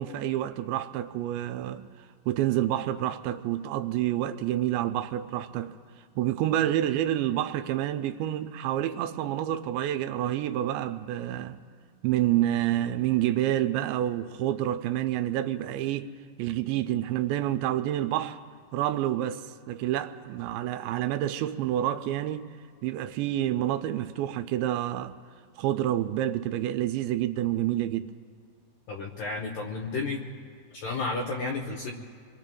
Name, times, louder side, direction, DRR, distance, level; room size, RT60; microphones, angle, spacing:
voice 1, 0.0-5.7 6.2-11.6 12.0-16.1 16.4-18.4 18.7-22.5 22.8-25.2 25.6-28.1, right 12 dB, 85° right, 2.7 m, -28 dB
voice 2, 28.9-30.2 30.7-31.9, left 3 dB, 75° left, 2.1 m, -32 dB
27.5 x 23.0 x 2.3 m
omnidirectional pair, 5.2 m